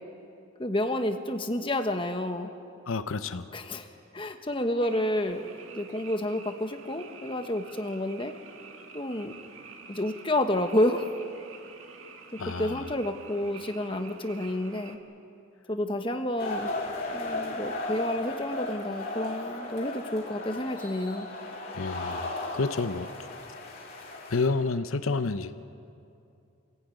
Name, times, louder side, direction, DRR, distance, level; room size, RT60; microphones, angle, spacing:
voice 1, 0.6-2.5 3.5-3.9 4.1-5.4 5.7-8.3 8.9-9.3 9.9-11.1 12.6-15.0 15.7-16.7 17.1-21.3, left 1 dB, 25° left, 6 dB, 1.3 m, -29 dB
voice 2, 2.9-3.5 12.4-12.8 21.7-22.2 22.5-23.1 24.3-25.6, left 3 dB, 80° left, 11 dB, 0.8 m, -29 dB
Frog, 4.8-15.0, right 5 dB, 75° right, 2.0 m, -49 dB
sound 1, 16.4-24.5, left 2 dB, 45° left, 3.4 m, -35 dB
26.5 x 16.5 x 9.2 m, 2.6 s
head